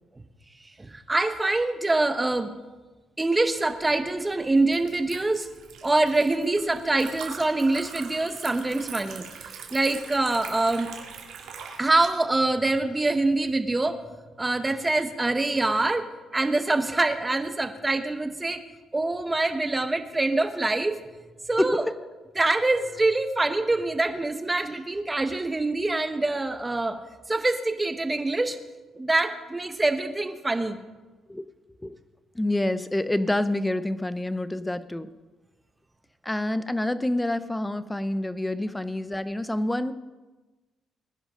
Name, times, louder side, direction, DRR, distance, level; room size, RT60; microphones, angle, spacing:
voice 1, 0.8-2.5 3.2-5.5 5.8-9.2 9.7-10.9 11.8-14.0 14.4-16.1 16.3-18.6 18.9-21.0 21.5-21.8 22.4-27.0 27.3-28.6 28.9-30.8, right 2 dB, 15° right, 8 dB, 1.2 m, -25 dB
Liquid, 3.7-12.1, right 6 dB, 80° right, 2.2 m, -42 dB
voice 2, 32.3-35.1 36.2-39.9, left 1 dB, 10° left, 13 dB, 0.8 m, -27 dB
20.5 x 10.5 x 3.9 m, 1.2 s
cardioid pair, 90°, 0 cm